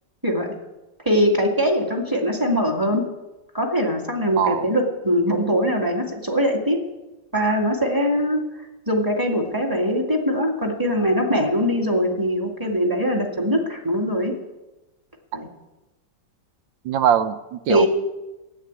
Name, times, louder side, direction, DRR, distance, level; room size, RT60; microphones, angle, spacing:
voice 1, 0.2-0.6 1.1-3.0 3.5-6.8 7.3-8.4 8.9-14.3 15.3-15.5 17.7-17.9, equal, 10° right, 1 dB, 2.1 m, -22 dB
voice 2, 4.4-4.7 16.8-17.9, right 9 dB, 85° right, 12 dB, 1.4 m, -21 dB
13.0 x 8.3 x 9.6 m, 1.0 s
omnidirectional pair, 2.0 m